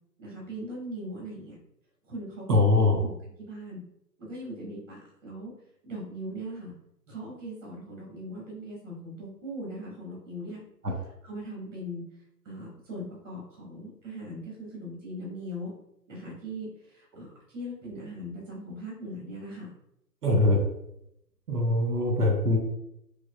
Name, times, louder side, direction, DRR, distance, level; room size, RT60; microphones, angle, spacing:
voice 1, 0.2-1.6 2.1-3.1 3.5-3.8 4.2-5.5 5.8-6.7 7.1-10.6 11.2-12.0 12.4-15.7 16.1-19.7, equal, 45° right, -4 dB, 1.4 m, -39 dB
voice 2, 2.5-3.0 10.8-10.9 20.2-20.6 21.5-22.6, left 2 dB, 65° right, 1 dB, 1.2 m, -22 dB
6.1 x 2.1 x 2.2 m, 0.80 s
figure-of-eight pair, 140°, 50 cm